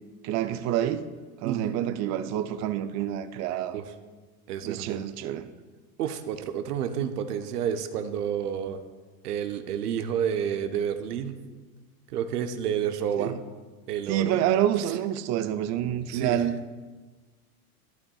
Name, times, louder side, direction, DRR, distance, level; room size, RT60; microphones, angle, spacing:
voice 1, 0.2-1.1 1.4-3.8 4.6-5.5 13.2-13.4 14.1-16.6, right 11 dB, 40° right, 10 dB, 0.5 m, -27 dB
voice 2, 1.4-1.8 3.7-3.8 4.5-5.0 6.0-8.8 9.2-11.4 12.1-13.4 13.9-14.4 14.9-15.0 16.1-16.4, right 8 dB, 85° right, 8 dB, 0.8 m, -30 dB
11.5 x 11.0 x 2.3 m, 1.3 s
hypercardioid pair, 95°, 45 cm